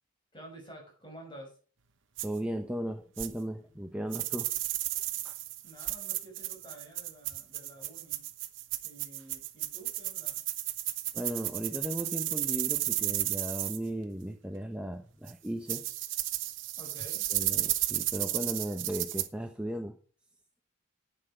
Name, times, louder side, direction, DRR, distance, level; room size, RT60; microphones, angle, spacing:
voice 1, 0.3-1.6 5.6-8.3 8.8-10.4 16.8-17.3, right 1 dB, 20° left, -1 dB, 5.9 m, -50 dB
voice 2, 2.2-4.5 5.2-5.3 11.1-15.8 17.3-20.0, right 1 dB, 5° right, 4 dB, 0.8 m, -36 dB
sound 1, 2.2-2.3 3.2-3.3 4.1-13.8 15.3-15.4 15.7-19.3, right 15 dB, 55° right, 1.0 m, -33 dB
11.5 x 9.0 x 5.0 m, 0.41 s
head